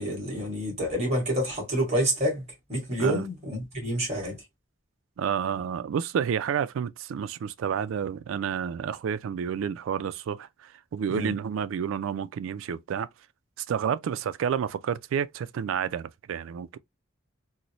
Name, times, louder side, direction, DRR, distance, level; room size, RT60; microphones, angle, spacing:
voice 1, 0.0-2.4 2.7-4.4 11.1-11.3, equal, 30° right, 1.9 m, -28 dB
voice 2, 5.2-13.1 13.7-16.8, right 7 dB, 75° right, 0.3 m, -30 dB
4.0 x 2.0 x 2.9 m
head